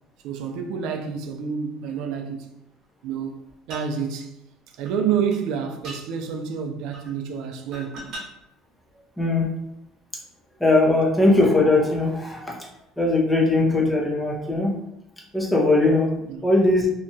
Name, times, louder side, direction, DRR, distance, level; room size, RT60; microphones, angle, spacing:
voice 1, 0.2-2.5 3.0-3.4 3.7-4.3 4.7-8.0 16.3-16.4, right 7 dB, 60° right, 0.4 m, -28 dB
sound 1, 3.7-3.9 4.8-4.9 5.3-5.4 5.8-6.0 6.9-7.2 7.7-8.3 9.2-9.3, right 1 dB, 40° right, 1.0 m, -38 dB
voice 2, 9.2-9.5 10.6-12.7 13.0-14.8 15.3-16.1 16.4-16.9, left 2 dB, 5° left, 0.5 m, -20 dB
2.8 x 2.2 x 2.7 m
cardioid pair, 170°, 0 cm